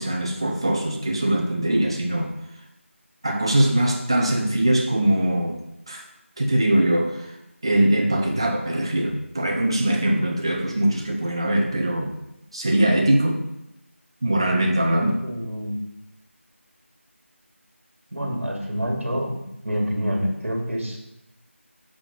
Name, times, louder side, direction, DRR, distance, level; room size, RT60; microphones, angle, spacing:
voice 1, 0.0-2.3 3.2-6.0 6.4-7.3 7.6-12.1 12.5-13.4 14.2-15.2, right 1 dB, 20° right, 1 dB, 0.6 m, -22 dB
voice 2, 15.2-15.8 18.1-19.4 19.6-21.0, equal, 65° right, 0 dB, 2.2 m, -27 dB
5.8 x 4.9 x 5.4 m, 0.86 s
figure-of-eight pair, 175°, 7 cm